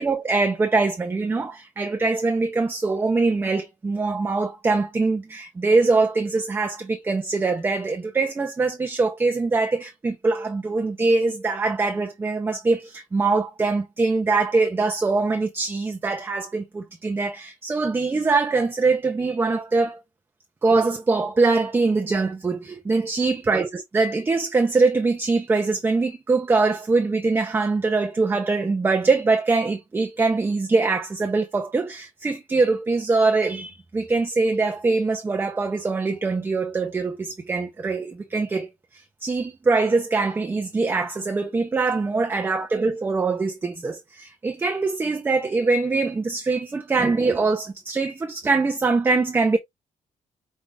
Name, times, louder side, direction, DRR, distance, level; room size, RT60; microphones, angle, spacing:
voice 1, 0.0-20.0 20.6-38.7 38.9-49.6, right 3 dB, 15° right, 0.6 m, -23 dB
5.3 x 2.4 x 3.3 m
cardioid pair, 160°, 13 cm